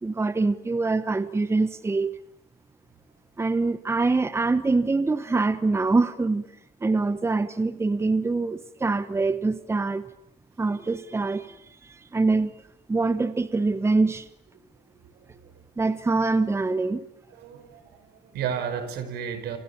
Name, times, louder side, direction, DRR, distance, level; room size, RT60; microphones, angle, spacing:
voice 1, 0.0-2.1 3.4-6.4 6.8-10.1 10.6-11.6 11.8-12.5 12.9-14.3 15.8-17.0, right 3 dB, 15° right, 13 dB, 1.1 m, -24 dB
voice 2, 14.9-15.5 17.3-19.6, right 8 dB, 75° right, 10 dB, 5.4 m, -34 dB
29.0 x 27.0 x 7.2 m, 0.77 s
cardioid pair, 110°, 17 cm